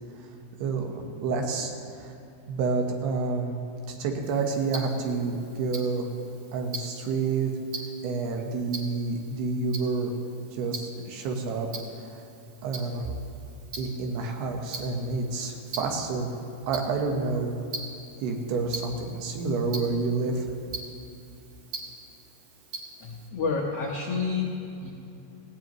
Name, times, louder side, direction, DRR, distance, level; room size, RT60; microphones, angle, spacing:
voice 1, 0.6-2.2 2.5-3.6 3.9-6.1 6.5-7.5 8.0-10.1 10.5-11.7 12.0-12.2 12.6-13.1 13.8-16.3 16.7-17.6 18.2-20.5, right 4 dB, 85° right, 2 dB, 3.3 m, -29 dB
Tick-tock, 4.2-23.3, right 3 dB, 50° right, 2.2 m, -43 dB
voice 2, 23.0-24.5 24.8-24.9, left 4 dB, 85° left, -2 dB, 1.3 m, -29 dB
18.0 x 17.0 x 3.1 m, 2.6 s
omnidirectional pair, 4.5 m